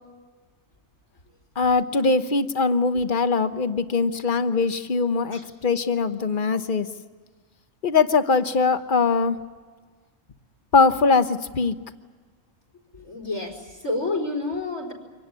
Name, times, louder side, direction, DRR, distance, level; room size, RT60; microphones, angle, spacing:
voice 1, 1.6-6.9 7.8-9.4 10.7-11.8, left 4 dB, 40° left, 9 dB, 1.2 m, -21 dB
voice 2, 12.9-14.9, left 2 dB, 80° left, 5 dB, 4.9 m, -29 dB
25.0 x 18.0 x 9.8 m, 1.4 s
omnidirectional pair, 1.3 m